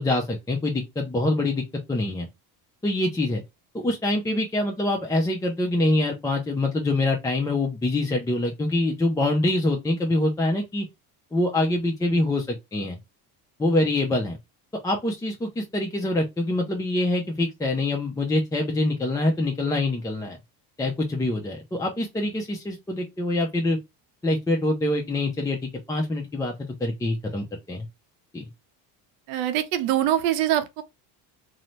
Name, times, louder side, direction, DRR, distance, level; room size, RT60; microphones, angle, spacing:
voice 1, 0.0-1.6 1.9-2.3 2.8-3.4 3.7-10.9 11.3-13.0 13.6-14.4 14.8-20.4 20.8-23.8 24.2-26.5 26.8-27.9 28.3-28.5, left 2 dB, 10° left, 0.4 m, -25 dB
voice 2, 29.3-30.8, right 12 dB, 85° right, 0.7 m, -23 dB
2.6 x 2.1 x 3.0 m
supercardioid pair, 95°, 43 cm